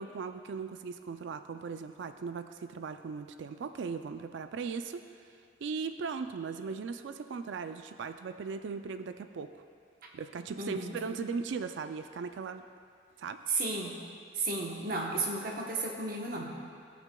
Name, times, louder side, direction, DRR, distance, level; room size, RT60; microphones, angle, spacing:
voice 1, 0.0-5.0 5.6-9.5 10.1-12.6 13.2-13.4, right 5 dB, 80° right, 9 dB, 0.4 m, -38 dB
voice 2, 10.6-10.9 13.5-13.9 14.3-16.6, right 3 dB, 50° right, -1 dB, 1.0 m, -33 dB
17.5 x 6.0 x 2.3 m, 2.3 s
head